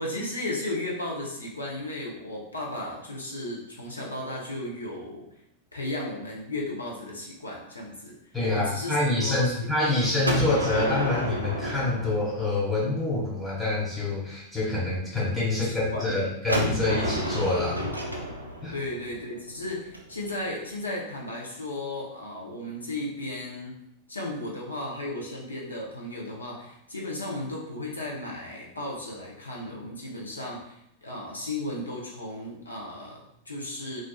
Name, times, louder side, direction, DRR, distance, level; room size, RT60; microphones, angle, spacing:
voice 1, 0.0-5.3 5.7-8.2 8.5-9.7 15.5-16.2 18.7-23.8 24.1-30.7 31.0-34.0, left 1 dB, 80° left, -3 dB, 0.6 m, -35 dB
voice 2, 8.3-17.8 18.6-18.7, left 2 dB, 5° left, -8 dB, 1.2 m, -26 dB
Gunshot gunfire, 10.2-13.1 16.5-20.3, equal, 85° right, 0.4 m, -31 dB
2.4 x 2.3 x 2.2 m, 0.79 s
figure-of-eight pair, 90°, 0 cm